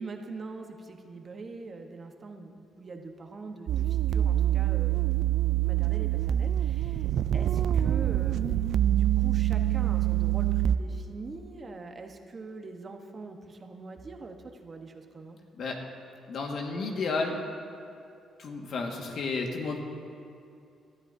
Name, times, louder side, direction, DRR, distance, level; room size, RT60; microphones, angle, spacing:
voice 1, 0.0-14.4 14.6-15.4, right 3 dB, 40° right, 4 dB, 1.1 m, -43 dB
sound 1, 3.7-10.8, right 12 dB, 70° right, 0.4 m, -25 dB
voice 2, 16.3-17.4 18.4-19.8, left 3 dB, 65° left, 1 dB, 1.7 m, -32 dB
18.5 x 13.0 x 2.7 m, 2.5 s
cardioid pair, 90°, 0 cm